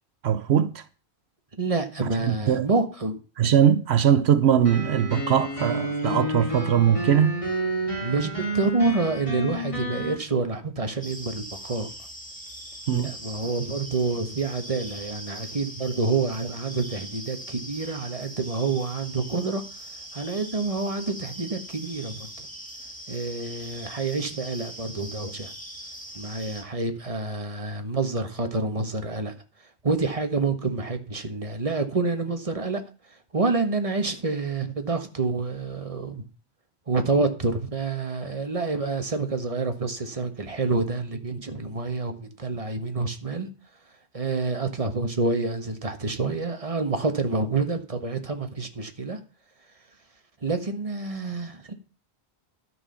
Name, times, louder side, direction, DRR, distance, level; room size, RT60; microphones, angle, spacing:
voice 1, 0.2-0.8 2.0-2.7 3.4-7.4 12.9-13.1, right 9 dB, 75° right, 1.0 m, -21 dB
voice 2, 1.6-3.1 8.0-11.9 12.9-19.6 20.1-22.5 23.1-25.5 26.1-29.3 29.8-32.8 33.3-36.2 36.9-43.5 44.1-49.2 50.4-51.7, right 3 dB, 30° right, 1.6 m, -28 dB
sound 1, 4.6-10.1, right 1 dB, 30° left, 3.7 m, -30 dB
sound 2, 11.0-26.6, equal, 5° left, 2.3 m, -41 dB
12.5 x 6.4 x 5.7 m
omnidirectional pair, 1.1 m